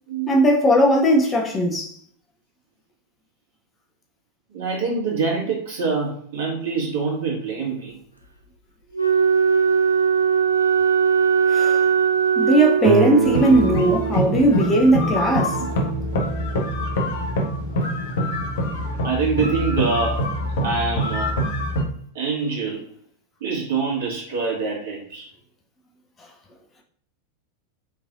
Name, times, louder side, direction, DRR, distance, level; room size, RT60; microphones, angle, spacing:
voice 1, 0.3-1.9 11.5-11.8 12.4-15.6, right 1 dB, 20° left, 0.7 m, -18 dB
voice 2, 4.5-8.0 15.6-15.7 19.0-20.2 20.6-21.3 22.1-22.8 23.4-25.3, right 4 dB, 60° right, 1.8 m, -25 dB
Wind instrument woodwind instrument, 8.9-13.4, right 6 dB, 90° left, 0.5 m, -19 dB
Guitar, 12.8-17.6, right 8 dB, 40° right, 0.3 m, -27 dB
sound 1, 13.2-21.8, equal, 55° left, 0.8 m, -25 dB
4.8 x 3.2 x 2.5 m
figure-of-eight pair, 90°, 0 cm